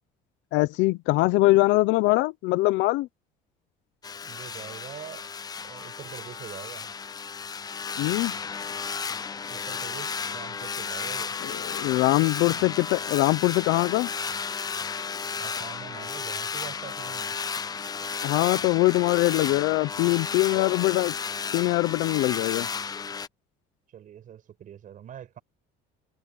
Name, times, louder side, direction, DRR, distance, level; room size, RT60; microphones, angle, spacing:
voice 1, 0.5-3.1 8.0-8.3 11.4-14.1 18.2-21.1 21.5-22.7, left 20 dB, 75° left, 0.7 m, -23 dB
sound 1, 4.0-23.3, left 6 dB, 20° left, 0.6 m, -33 dB
voice 2, 4.2-5.3 5.6-6.9 9.5-11.4 12.5-12.7 15.4-17.4 23.9-25.4, right 10 dB, 45° right, 5.5 m, -44 dB
cardioid pair, 130°, 19 cm